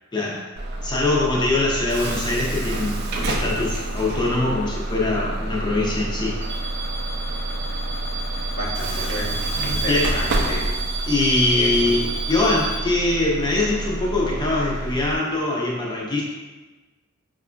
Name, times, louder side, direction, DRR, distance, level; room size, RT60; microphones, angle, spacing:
voice 1, 0.1-0.4 0.8-6.4 9.9-10.2 11.0-16.2, left 2 dB, 20° left, -4 dB, 0.6 m, -23 dB
Bus / Alarm, 0.6-15.2, right 2 dB, 50° right, 0.4 m, -27 dB
voice 2, 8.6-10.7 11.5-11.9, equal, 75° left, -5 dB, 0.9 m, -31 dB
4.6 x 2.5 x 2.2 m, 1.2 s
head